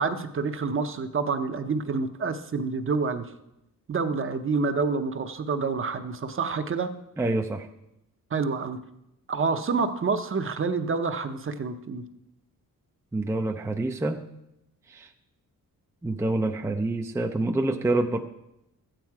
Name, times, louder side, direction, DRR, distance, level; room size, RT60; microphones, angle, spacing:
voice 1, 0.0-3.3 3.9-6.9 8.3-8.8 9.3-12.0, right 4 dB, 35° right, 8 dB, 0.7 m, -28 dB
voice 2, 7.2-7.7 13.1-14.2 14.9-15.1 16.0-18.2, right 2 dB, 10° right, 4 dB, 0.4 m, -27 dB
13.0 x 9.0 x 4.7 m, 0.87 s
wide cardioid pair, 165°, 35 cm